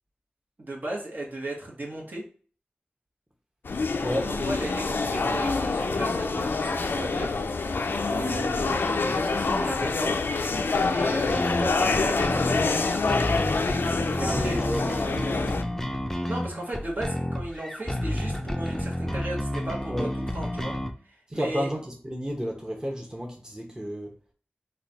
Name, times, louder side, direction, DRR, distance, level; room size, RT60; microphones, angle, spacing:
voice 1, 0.6-2.2 4.3-7.4 8.0-10.2 10.8-12.6 14.1-14.6 16.3-20.7 21.0-21.7, right 1 dB, 60° right, -2 dB, 1.1 m, -35 dB
sound 1, 3.7-15.6, left 3 dB, 80° left, 0.3 m, -26 dB
voice 2, 4.0-4.3 14.2-15.6 19.9-20.1 21.3-24.1, equal, 20° right, -1 dB, 0.9 m, -32 dB
sound 2, 11.3-20.9, equal, 10° left, 0.4 m, -31 dB
3.1 x 2.3 x 3.9 m, 0.42 s
wide cardioid pair, 50°, 4 cm